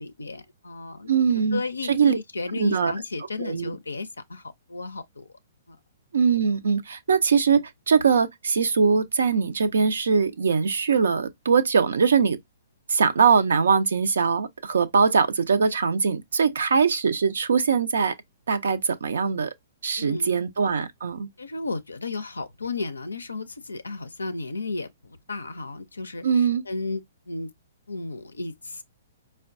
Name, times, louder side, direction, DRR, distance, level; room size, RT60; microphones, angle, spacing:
voice 1, 0.0-1.1 1.5-5.3 5.7-5.8 20.0-20.4 21.4-27.5 27.9-28.8, left 3 dB, 90° left, 0.4 m, -34 dB
voice 2, 1.1-2.2 2.6-2.9 3.4-3.7 6.1-12.4 12.9-18.2 18.5-19.5 19.8-21.3 26.2-26.6, right 5 dB, 70° right, 0.4 m, -22 dB
4.4 x 2.1 x 2.5 m
hypercardioid pair, 125°, 0 cm